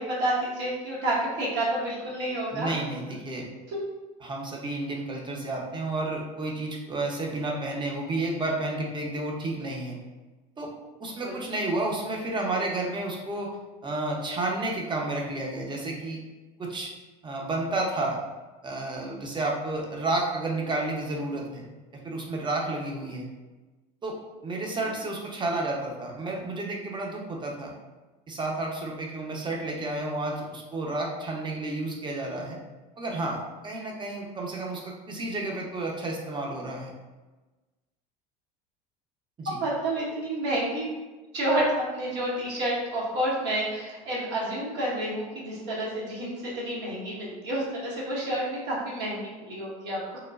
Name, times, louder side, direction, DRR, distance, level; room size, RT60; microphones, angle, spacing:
voice 1, 0.0-2.7 3.7-3.8 11.2-11.4 39.5-40.9 41.3-50.2, right 1 dB, 65° right, -5 dB, 1.1 m, -29 dB
voice 2, 2.5-3.5 4.2-10.0 10.6-10.7 11.0-13.6 13.8-16.2 16.6-16.9 17.2-18.2 18.6-21.7 22.0-23.3 24.0-27.7 28.3-32.6 33.0-36.9 39.4-39.6, right 2 dB, 25° right, -1 dB, 0.6 m, -31 dB
3.0 x 2.1 x 2.3 m, 1.2 s
supercardioid pair, 90°, 20 cm